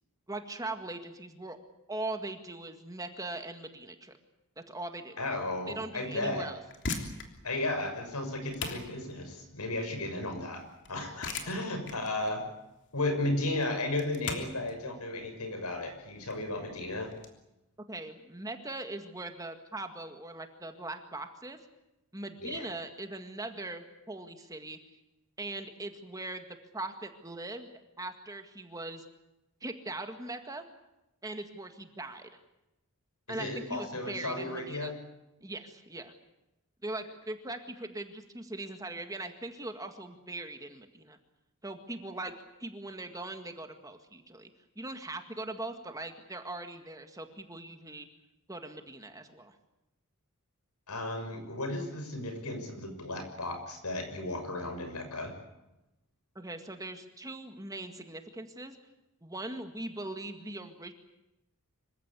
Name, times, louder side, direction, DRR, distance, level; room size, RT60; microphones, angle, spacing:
voice 1, 0.3-1.6 1.9-4.2 4.7-5.2 5.7-6.6 17.9-21.6 22.1-24.8 25.4-27.7 28.0-29.0 29.6-30.7 31.2-32.3 33.3-34.9 35.4-36.1 36.8-41.2 41.6-42.3 42.6-44.5 44.8-48.1 48.5-49.5 56.4-58.8 59.2-60.9, right 2 dB, 15° right, 6 dB, 1.9 m, -40 dB
voice 2, 5.2-6.5 7.4-10.6 10.9-12.4 12.9-17.1 22.4-22.7 33.3-34.9 50.9-55.3, left 2 dB, 90° left, 6 dB, 6.3 m, -34 dB
sound 1, 6.5-17.3, left 3 dB, 55° left, 3.3 m, -41 dB
26.0 x 16.0 x 9.8 m, 0.94 s
head